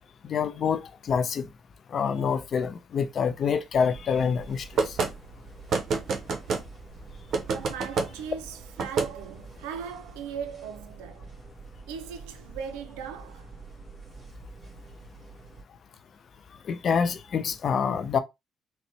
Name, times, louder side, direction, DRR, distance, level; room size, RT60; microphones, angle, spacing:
voice 1, 0.2-0.8 1.1-1.5 1.9-4.9 16.7-18.2, left 6 dB, 55° left, 0.5 m, -26 dB
sound 1, 3.7-15.6, right 4 dB, 40° right, 1.8 m, -47 dB
sound 2, 4.8-5.1 5.7-6.6 7.3-8.1 8.8-9.1, right 4 dB, 60° right, 0.8 m, -27 dB
voice 2, 7.4-11.3 11.9-13.6, right 7 dB, 90° right, 0.5 m, -38 dB
4.1 x 2.1 x 3.2 m
supercardioid pair, 60°, 0 cm